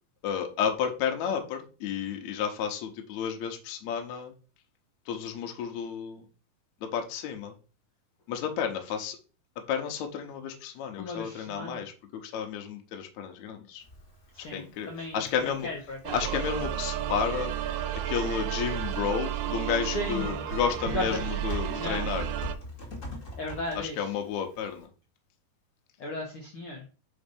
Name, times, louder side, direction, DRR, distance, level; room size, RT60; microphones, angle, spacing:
voice 1, 0.2-4.3 5.1-6.3 6.8-7.5 8.3-9.2 9.6-13.8 14.5-15.7 16.1-17.5 18.1-22.3 23.8-24.9, left 7 dB, 70° left, 5 dB, 1.9 m, -32 dB
voice 2, 10.9-11.8 14.3-15.2 15.4-16.1 19.8-20.3 20.9-21.2 21.8-22.1 23.4-24.0 26.0-26.8, left 2 dB, 85° left, 0 dB, 1.2 m, -35 dB
Typing, 13.8-24.9, left 2 dB, 45° left, 1.0 m, -45 dB
sound 1, 16.0-22.5, right 11 dB, 80° right, 2.1 m, -32 dB
5.3 x 3.9 x 5.2 m, 0.35 s
omnidirectional pair, 4.0 m